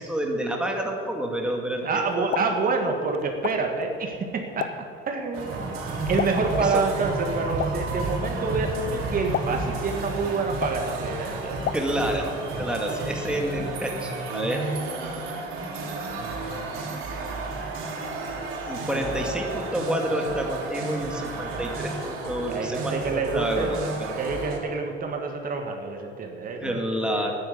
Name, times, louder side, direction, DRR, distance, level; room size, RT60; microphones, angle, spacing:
voice 1, 0.0-2.4 6.6-6.8 11.7-14.7 18.7-24.1 26.6-27.4, right 1 dB, 5° right, 1 dB, 2.1 m, -29 dB
voice 2, 1.8-4.7 5.1-5.7 6.1-11.6 12.9-13.0 16.2-16.7 18.9-19.1 22.5-23.7 24.2-27.4, right 4 dB, 40° right, 3 dB, 1.7 m, -28 dB
Explosion, 2.1-12.3, left 9 dB, 55° left, 0.7 m, -37 dB
sound 1, 5.3-24.6, right 3 dB, 85° right, 3.3 m, -32 dB
12.0 x 9.9 x 8.6 m, 2.6 s
cardioid pair, 125°, 21 cm